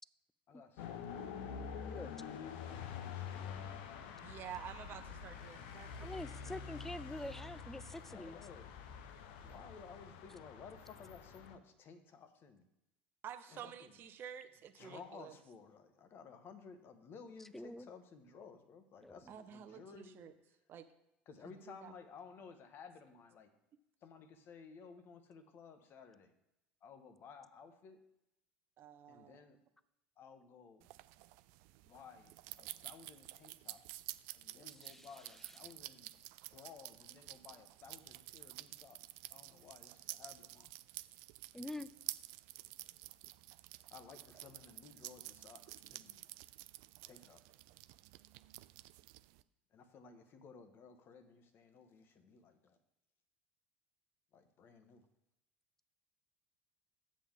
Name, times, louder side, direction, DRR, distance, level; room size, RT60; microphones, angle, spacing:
voice 1, 0.5-3.7 8.1-8.7 9.4-12.7 13.5-14.0 14.7-20.3 21.2-23.5 24.0-26.3 26.8-28.0 29.1-29.6 30.2-30.9 31.8-34.0 34.3-40.7 43.9-46.3 47.1-47.6 49.7-52.8 54.3-55.0, left 5 dB, 40° left, 9 dB, 1.3 m, -56 dB
sound 1, 0.8-11.6, left 7 dB, 60° left, 0.8 m, -47 dB
voice 2, 4.2-6.5 13.2-15.3 19.3-20.3 20.7-20.9 21.4-21.9 28.8-29.4, right 9 dB, 40° right, 8 dB, 0.8 m, -50 dB
voice 3, 6.0-8.4 17.5-17.9 19.0-19.2 34.8-35.1 41.5-41.9, left 1 dB, 5° left, 17 dB, 0.5 m, -45 dB
sound 2, 30.8-49.4, right 18 dB, 60° right, 0.4 m, -51 dB
10.0 x 7.7 x 3.6 m, 0.89 s
figure-of-eight pair, 65°, 6 cm